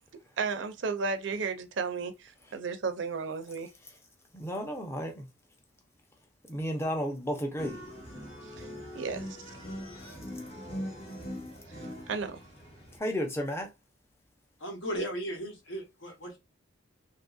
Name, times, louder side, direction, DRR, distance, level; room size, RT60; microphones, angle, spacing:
voice 1, 0.4-3.7 8.6-8.7 8.9-9.3 12.1-12.4, right 4 dB, 65° right, 0.5 m, -33 dB
voice 2, 4.3-5.3 6.5-7.8 13.0-13.7, equal, 15° left, 0.6 m, -32 dB
sound 1, 7.6-13.0, equal, 30° left, 1.0 m, -41 dB
voice 3, 14.6-16.4, right 1 dB, 70° left, 1.1 m, -36 dB
2.8 x 2.6 x 2.3 m
head